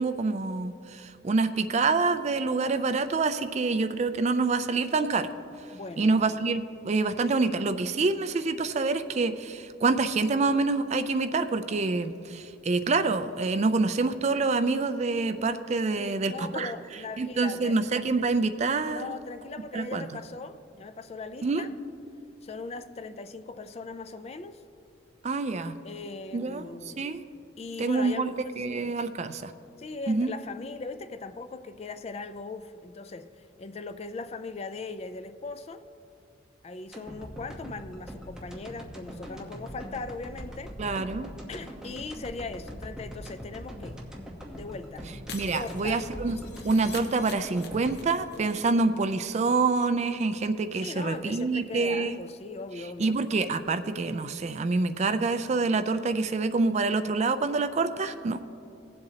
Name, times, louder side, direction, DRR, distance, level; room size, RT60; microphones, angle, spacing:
voice 1, 0.0-5.3 6.0-16.7 17.2-19.1 19.7-20.0 21.4-21.6 25.2-25.8 26.3-27.2 27.8-29.5 30.1-30.3 40.8-41.3 45.3-46.4 46.6-52.2 53.0-58.4, right 3 dB, 35° right, 0.4 m, -26 dB
voice 2, 5.7-6.4 16.0-17.8 18.9-21.7 22.4-24.6 25.8-27.1 27.6-28.9 29.8-35.8 36.6-40.7 41.5-44.0 44.5-45.1 45.5-46.0 50.8-53.1, left 3 dB, 35° left, 0.4 m, -39 dB
sound 1, 36.9-49.2 49.5-49.6, equal, 5° right, 1.0 m, -42 dB
Shatter, 45.3-48.4 48.6-48.7 49.0-49.1, left 5 dB, 60° left, 0.9 m, -44 dB
18.5 x 7.8 x 2.8 m
head